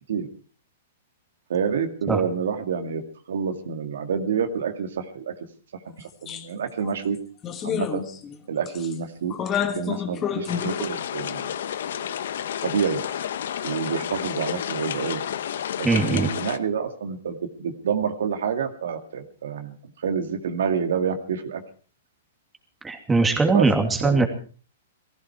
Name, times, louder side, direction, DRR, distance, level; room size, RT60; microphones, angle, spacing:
voice 1, 1.5-3.0 3.3-5.3 6.0-7.2 7.6-8.0 8.5-9.3 9.6-11.5 12.0-12.1 12.6-13.0 13.6-15.2 15.8-19.7 20.0-21.6 23.5-23.7 24.0-24.2, right 6 dB, 80° right, 6 dB, 2.2 m, -28 dB
sound 1, 6.3-6.4 6.8-6.9 7.4-8.4 8.7-8.9 9.3-10.8, left 8 dB, 20° left, 1.5 m, -29 dB
sound 2, 10.5-16.6, left 9 dB, 70° left, 1.0 m, -31 dB
voice 2, 15.8-16.3 22.8-24.3, right 3 dB, 10° right, 3 dB, 2.7 m, -20 dB
19.0 x 15.5 x 4.7 m, 0.40 s
hypercardioid pair, 150°, 0 cm